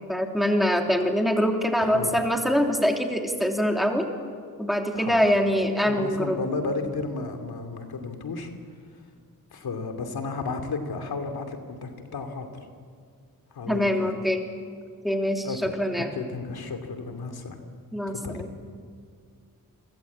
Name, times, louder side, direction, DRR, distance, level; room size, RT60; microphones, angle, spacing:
voice 1, 0.1-4.1 4.6-6.4 13.7-14.4 15.0-16.1 17.9-18.5, equal, ahead, 2 dB, 3.0 m, -24 dB
voice 2, 1.8-2.1 4.9-5.2 5.8-8.5 9.5-12.5 13.5-14.1 15.4-17.6 18.1-18.4, left 4 dB, 90° left, 7 dB, 2.8 m, -33 dB
28.0 x 23.0 x 8.5 m, 2.1 s
wide cardioid pair, 110°, 36 cm